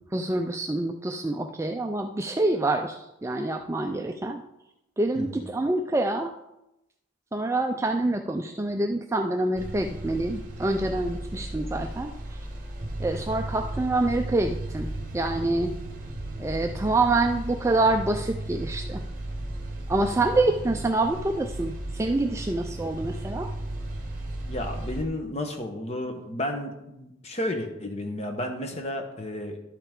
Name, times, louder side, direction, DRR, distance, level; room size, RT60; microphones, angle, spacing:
voice 1, 0.1-4.4 5.0-6.3 7.3-12.4 13.0-15.8 16.4-19.0 19.9-23.5, right 2 dB, 15° right, 5 dB, 0.3 m, -26 dB
sound 1, 9.6-25.0, right 1 dB, 40° right, 1.2 m, -35 dB
voice 2, 24.5-29.6, left 1 dB, 30° left, 4 dB, 1.0 m, -32 dB
12.0 x 5.7 x 3.6 m, 0.88 s
head